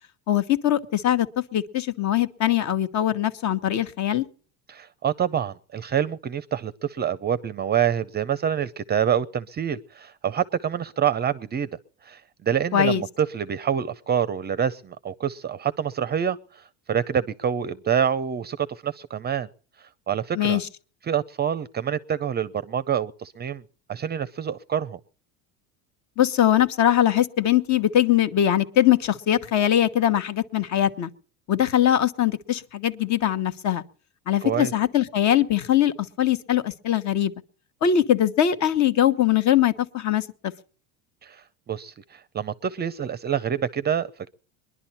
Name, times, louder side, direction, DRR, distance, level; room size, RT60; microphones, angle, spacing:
voice 1, 0.3-4.2 12.7-13.0 20.3-20.7 26.2-31.1 31.5-33.8 34.3-37.3 37.8-40.2, left 11 dB, 45° left, 1.2 m, -21 dB
voice 2, 4.7-11.7 12.0-19.5 20.1-20.6 21.1-23.6 23.9-25.0 34.4-34.7 41.2-44.3, right 8 dB, 25° right, 0.6 m, -26 dB
22.0 x 11.5 x 4.3 m
cardioid pair, 135°, 40 cm